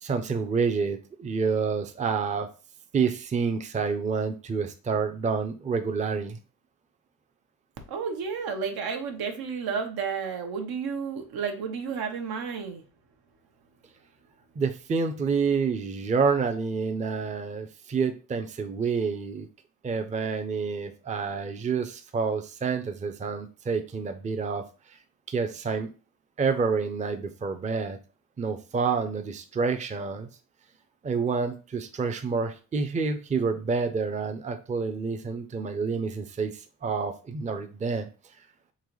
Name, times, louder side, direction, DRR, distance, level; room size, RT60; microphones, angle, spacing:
voice 1, 0.0-2.5 2.9-6.4 14.6-19.5 19.8-24.6 25.3-25.9 26.4-28.0 28.4-30.3 31.0-38.1, right 5 dB, 20° right, 6 dB, 0.4 m, -28 dB
voice 2, 7.9-12.8, right 6 dB, 85° right, 5 dB, 0.9 m, -31 dB
3.9 x 2.9 x 3.1 m, 0.34 s
cardioid pair, 115°, 37 cm